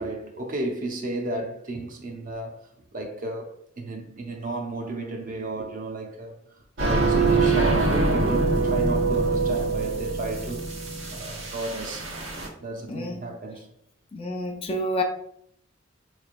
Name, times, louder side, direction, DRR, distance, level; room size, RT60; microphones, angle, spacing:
voice 1, 0.0-6.3 6.8-10.7 11.1-12.1 12.6-13.7, right 2 dB, 45° right, 0.7 m, -33 dB
sound 1, 6.8-12.5, right 3 dB, 85° right, 1.1 m, -24 dB
voice 2, 12.9-13.2 14.1-15.0, left 1 dB, 30° left, 0.5 m, -29 dB
4.7 x 3.2 x 2.5 m
head